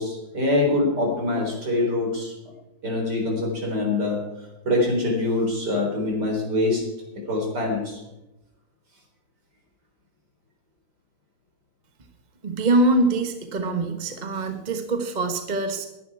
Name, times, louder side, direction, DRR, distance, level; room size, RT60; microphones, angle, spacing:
voice 1, 0.0-2.3 2.8-4.2 4.6-6.8 7.3-8.0, left 2 dB, 50° right, 1 dB, 4.5 m, -24 dB
voice 2, 12.4-15.9, right 2 dB, 30° right, 6 dB, 1.0 m, -23 dB
21.0 x 10.5 x 4.7 m, 0.98 s
omnidirectional pair, 2.4 m